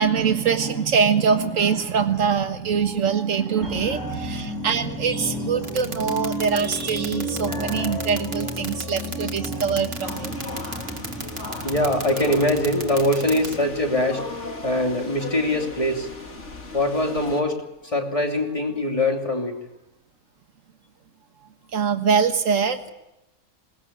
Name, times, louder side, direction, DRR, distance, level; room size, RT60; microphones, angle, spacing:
voice 1, 0.0-10.4 21.7-22.9, right 6 dB, 70° right, 7 dB, 1.8 m, -23 dB
sound 1, 3.6-14.6 15.0-15.1, equal, 5° left, 5.0 m, -33 dB
voice 2, 5.0-6.2 7.0-7.1 7.4-9.0 11.6-14.2 14.6-16.1 16.7-19.6, left 1 dB, 25° left, 2 dB, 2.9 m, -24 dB
sound 2, 5.6-13.5, right 3 dB, 40° right, 2.2 m, -32 dB
sound 3, 10.0-17.4, left 3 dB, 60° left, 2.7 m, -37 dB
21.0 x 19.5 x 8.9 m, 0.91 s
omnidirectional pair, 1.4 m